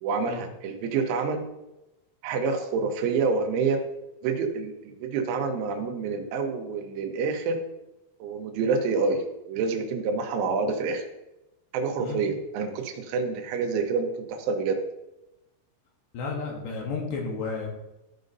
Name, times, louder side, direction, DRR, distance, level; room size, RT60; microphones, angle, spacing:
voice 1, 0.0-1.4 2.2-3.8 4.2-7.6 8.2-11.1 11.7-14.8, right 4 dB, 85° right, 4 dB, 3.4 m, -27 dB
voice 2, 16.1-17.7, left 4 dB, 70° left, 0 dB, 2.8 m, -32 dB
14.0 x 5.3 x 2.6 m, 0.93 s
omnidirectional pair, 5.5 m